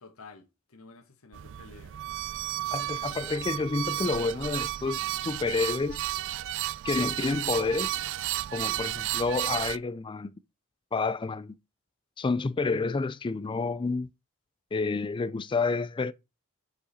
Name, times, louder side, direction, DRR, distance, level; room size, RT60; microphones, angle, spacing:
voice 1, 0.0-1.9 8.4-8.8, left 3 dB, 80° left, 1.4 m, -51 dB
sound 1, 1.3-9.8, right 14 dB, 60° right, 0.3 m, -33 dB
voice 2, 2.7-6.0 6.8-8.0 8.5-10.3 10.9-11.5 12.2-14.1 14.7-16.1, left 3 dB, 25° left, 0.3 m, -29 dB
6.1 x 5.5 x 4.2 m
head